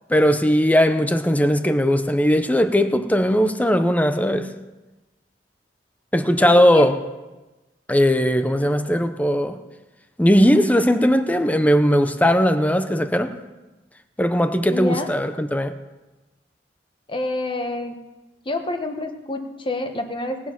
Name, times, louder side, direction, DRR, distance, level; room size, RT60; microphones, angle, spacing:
voice 1, 0.1-4.5 6.1-7.0 7.9-9.6 10.2-13.3 14.2-15.7, equal, 10° left, 0.7 m, -18 dB
voice 2, 6.4-6.9 14.7-15.1 17.1-18.0 18.4-20.4, left 2 dB, 30° left, 1.2 m, -27 dB
18.5 x 7.3 x 5.9 m
head